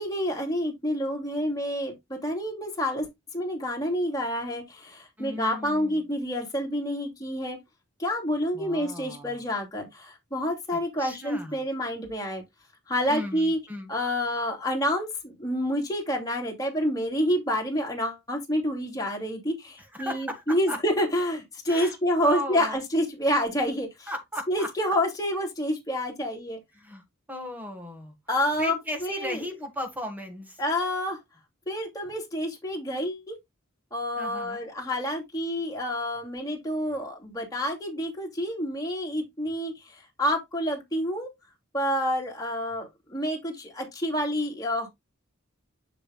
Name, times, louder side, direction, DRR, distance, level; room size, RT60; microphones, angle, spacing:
voice 1, 0.0-7.6 8.0-12.4 12.9-13.6 13.9-24.1 24.5-26.6 28.3-29.4 30.6-31.2 31.7-33.4 33.9-41.3 41.7-44.9, equal, 20° left, 2.5 m, -28 dB
voice 2, 5.2-6.1 8.5-9.4 10.7-11.6 13.1-13.9 19.8-20.8 21.7-22.8 24.1-24.7 26.7-28.2 28.6-30.6 34.2-34.6, left 1 dB, 10° right, 1.7 m, -36 dB
7.4 x 6.8 x 2.3 m
head